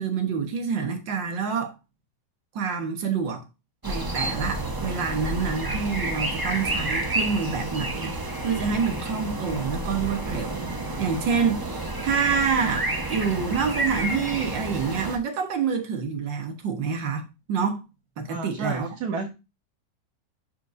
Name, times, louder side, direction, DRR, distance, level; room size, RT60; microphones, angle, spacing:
voice 1, 0.0-1.7 2.6-3.4 3.8-10.7 11.0-17.8 18.2-18.9, right 6 dB, 90° right, 2.0 m, -27 dB
sound 1, 3.8-15.2, right 2 dB, 20° right, 0.5 m, -30 dB
voice 2, 18.3-19.3, right 4 dB, 65° right, 1.6 m, -31 dB
11.0 x 4.6 x 2.6 m
omnidirectional pair, 1.9 m